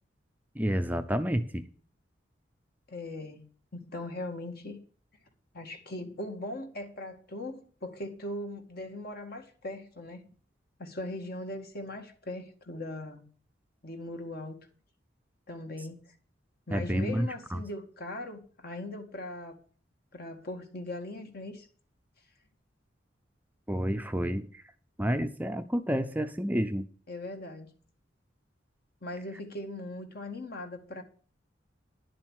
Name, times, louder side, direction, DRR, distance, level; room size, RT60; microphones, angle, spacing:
voice 1, 0.6-1.6 16.7-17.6 23.7-24.6 25.0-26.8, equal, 10° right, 0.6 m, -29 dB
voice 2, 2.9-3.4 3.7-4.8 5.5-10.3 10.8-13.2 13.8-14.6 15.5-15.9 16.7-19.6 20.1-21.7 27.1-27.7 29.0-31.0, left 1 dB, 55° left, 2.0 m, -39 dB
11.0 x 7.6 x 6.3 m
head